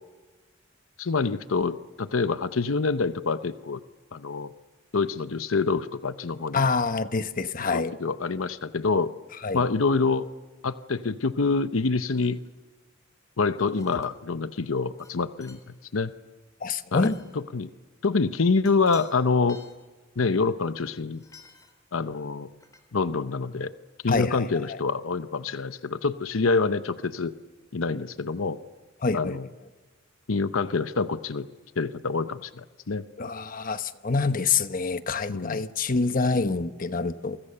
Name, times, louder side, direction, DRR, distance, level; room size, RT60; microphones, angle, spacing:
voice 1, 1.0-3.8 4.1-4.5 4.9-6.6 7.6-9.1 9.5-10.3 10.6-12.4 13.4-16.1 16.9-17.1 17.5-17.7 18.0-19.6 20.2-21.2 21.9-22.5 22.9-23.7 24.0-27.3 27.7-28.6 29.1-29.4 30.3-31.5 31.8-33.0 35.3-35.6, left 4 dB, 85° left, 12 dB, 0.8 m, -26 dB
voice 2, 6.5-7.9 9.4-9.6 16.6-17.2 24.1-24.8 29.0-29.4 33.2-37.4, left 4 dB, 45° left, 11 dB, 1.0 m, -26 dB
sound 1, 12.1-12.5 13.6-14.2 15.0-15.1 15.4-15.7 16.9-17.4 18.6-19.1 19.4-19.8 21.1-21.8 22.6-22.8, left 3 dB, 20° left, 3.6 m, -52 dB
28.5 x 24.5 x 6.8 m, 1.3 s
head